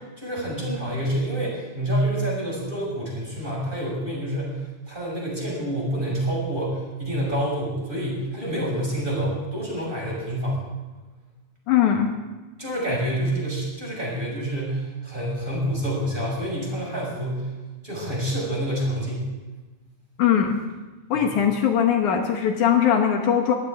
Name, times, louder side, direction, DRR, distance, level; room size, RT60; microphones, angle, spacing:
voice 1, 0.2-10.6 12.6-17.5 17.8-19.3 21.1-21.3, right 1 dB, 15° right, -4 dB, 6.1 m, -27 dB
voice 2, 11.7-12.1 20.2-20.6 21.1-23.5, left 8 dB, 70° left, 3 dB, 2.6 m, -20 dB
23.0 x 15.0 x 3.6 m, 1.2 s
omnidirectional pair, 3.7 m